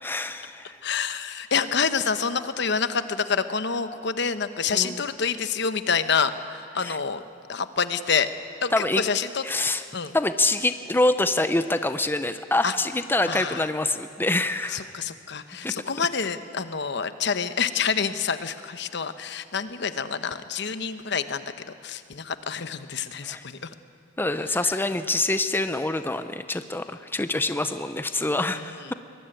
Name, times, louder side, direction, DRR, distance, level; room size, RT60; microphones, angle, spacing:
voice 1, 0.0-0.8 4.7-5.0 6.8-7.0 8.7-9.0 9.4-9.8 10.1-14.9 15.6-15.8 23.2-23.5 24.2-28.9, left 2 dB, 10° left, 10 dB, 0.6 m, -25 dB
voice 2, 0.8-7.2 7.5-8.3 8.6-9.4 9.9-10.1 12.6-12.7 13.3-13.7 14.7-23.7 24.6-24.8 28.5-28.9, left 6 dB, 65° left, 11 dB, 1.0 m, -27 dB
23.0 x 20.5 x 9.1 m, 2.4 s
head